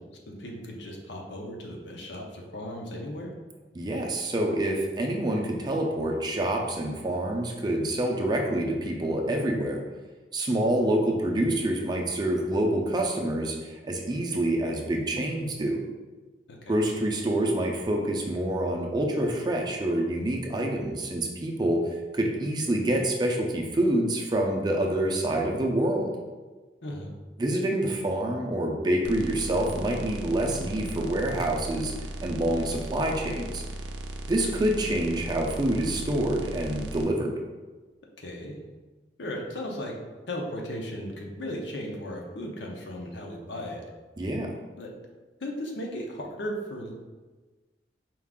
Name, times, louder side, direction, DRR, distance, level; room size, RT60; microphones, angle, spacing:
voice 1, 0.0-3.3 16.5-16.8 26.8-27.1 38.2-38.6 39.2-39.9 40.3-43.8 44.8-44.9 45.4-46.9, equal, 75° left, 0 dB, 0.7 m, -36 dB
voice 2, 3.7-9.8 10.3-15.8 16.7-21.9 22.1-26.1 27.4-31.9 32.2-33.6 34.3-37.4 44.2-44.5, right 1 dB, 25° right, 1 dB, 0.4 m, -27 dB
sound 1, 29.0-37.0, right 1 dB, 80° right, 0.4 m, -37 dB
4.6 x 2.4 x 3.6 m, 1.3 s
head